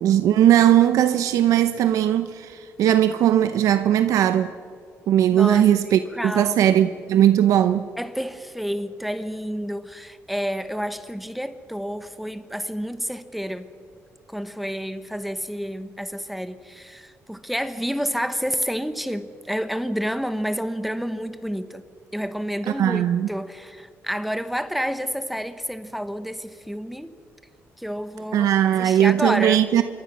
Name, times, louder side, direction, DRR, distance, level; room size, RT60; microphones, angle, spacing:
voice 1, 0.0-4.5 5.1-7.9 22.8-23.3 28.3-29.8, right 11 dB, 85° right, 0.8 m, -19 dB
voice 2, 5.3-6.5 8.0-13.7 14.3-21.8 22.1-27.1 27.8-29.6, equal, ahead, 1.0 m, -29 dB
26.5 x 23.5 x 6.2 m
cardioid pair, 125°, 6 cm